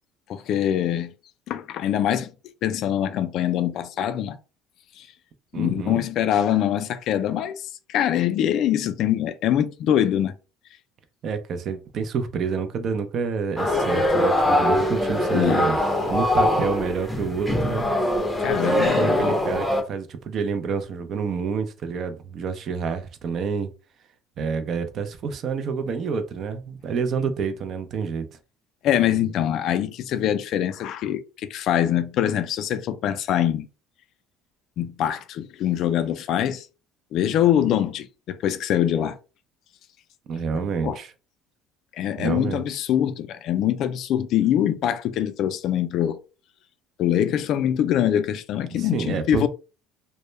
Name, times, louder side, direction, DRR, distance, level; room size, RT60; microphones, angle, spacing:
voice 1, 0.3-1.1 1.5-2.3 2.6-4.4 5.0-5.1 5.5-10.4 15.3-15.7 18.4-19.3 28.8-33.7 34.8-36.7 37.1-39.2 40.8-41.0 42.0-46.2 47.0-49.5, left 10 dB, 60° left, 0.3 m, -24 dB
voice 2, 5.5-6.0 11.2-15.8 16.1-17.9 18.7-23.7 24.4-28.2 40.3-41.1 42.2-42.7 48.7-49.5, right 5 dB, 50° right, 0.4 m, -28 dB
sound 1, 13.6-19.8, left 1 dB, 10° left, 0.5 m, -22 dB
2.1 x 2.0 x 3.1 m
supercardioid pair, 90°, 0 cm